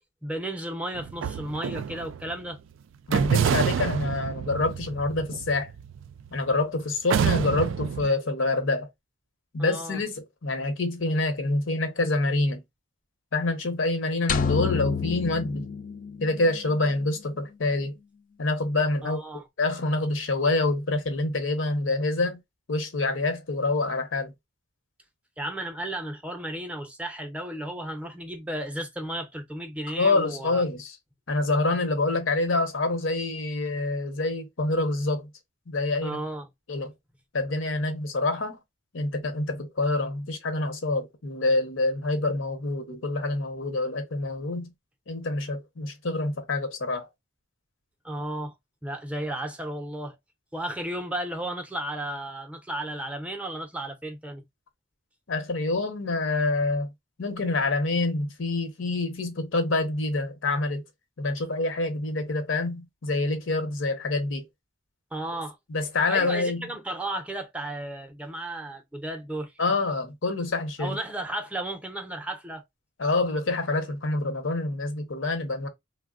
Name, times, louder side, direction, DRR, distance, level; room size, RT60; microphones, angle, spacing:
voice 1, 0.2-2.6 9.6-10.0 19.0-19.4 25.4-30.6 36.0-36.5 48.0-48.5 48.8-50.2 50.5-54.4 65.1-65.6 66.1-69.5 70.8-72.6, right 1 dB, 5° right, 0.6 m, -34 dB
sound 1, 0.9-2.4 3.1-6.5 7.1-8.1, right 7 dB, 70° right, 0.3 m, -27 dB
voice 2, 3.1-5.7 6.3-8.9 9.5-12.6 13.3-15.7 16.2-18.0 18.4-19.2 19.6-22.4 22.7-24.3 29.9-31.0 31.3-35.3 35.7-36.2 36.7-36.9 37.3-38.6 38.9-44.7 45.1-47.1 55.3-56.9 57.2-60.8 61.2-64.5 65.7-66.7 69.6-71.0 73.0-75.7, left 2 dB, 75° left, 0.8 m, -26 dB
sound 2, 14.3-16.6, left 7 dB, 45° left, 0.4 m, -29 dB
3.3 x 2.1 x 2.3 m
head